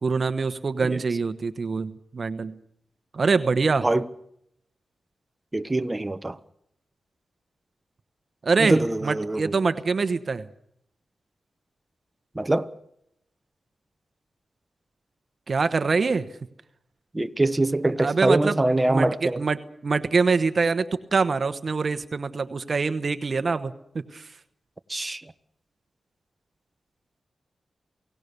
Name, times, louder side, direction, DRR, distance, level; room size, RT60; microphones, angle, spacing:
voice 1, 0.0-2.6 3.1-3.9 8.4-10.5 15.5-16.3 18.0-18.6 18.9-23.7 24.1-24.3, right 4 dB, 50° right, 1.1 m, -24 dB
voice 2, 5.5-6.4 8.6-9.5 12.3-12.7 17.1-19.4 24.9-25.2, right 2 dB, 20° right, 1.0 m, -24 dB
28.5 x 17.5 x 6.8 m
cardioid pair, 75°, 0 cm